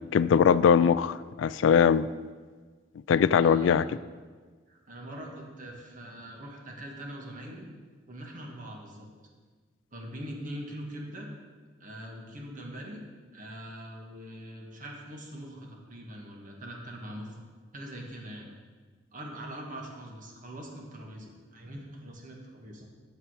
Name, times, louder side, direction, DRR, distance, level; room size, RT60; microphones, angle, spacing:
voice 1, 0.1-2.1 3.1-3.8, left 7 dB, 85° left, 17 dB, 0.3 m, -21 dB
voice 2, 3.4-3.9 4.7-7.7 8.1-9.1 9.9-11.3 11.8-13.0 13.3-17.4 17.7-18.5 19.1-22.9, right 1 dB, 45° right, 0 dB, 1.5 m, -42 dB
8.9 x 6.9 x 4.9 m, 1.5 s
head